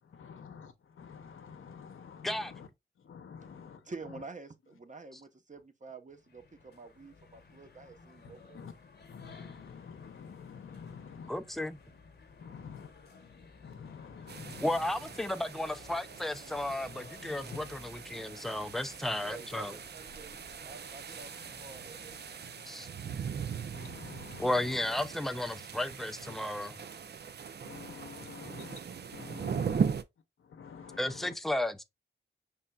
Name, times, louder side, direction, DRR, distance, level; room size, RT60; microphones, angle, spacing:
voice 1, 0.0-2.7 3.0-4.2 8.2-11.3 12.3-12.9 13.4-14.9 16.5-16.7 17.5-17.9 21.1-21.2 21.8-21.9 22.7-22.8 23.6-25.0 26.2-26.9 27.4-29.9 30.4-31.3, left 6 dB, 80° left, 0.8 m, -49 dB
voice 2, 3.9-8.6 19.2-20.4 20.6-22.2 30.8-31.1, right 4 dB, 40° right, 0.9 m, -48 dB
sound 1, 6.1-22.6, left 4 dB, 55° left, 1.0 m, -56 dB
voice 3, 11.3-11.8 14.6-19.7 22.7-22.9 24.4-26.8 31.0-31.8, left 1 dB, ahead, 0.5 m, -33 dB
sound 2, 14.3-30.0, right 6 dB, 55° right, 0.5 m, -39 dB
5.5 x 3.6 x 2.3 m
cardioid pair, 65°, 21 cm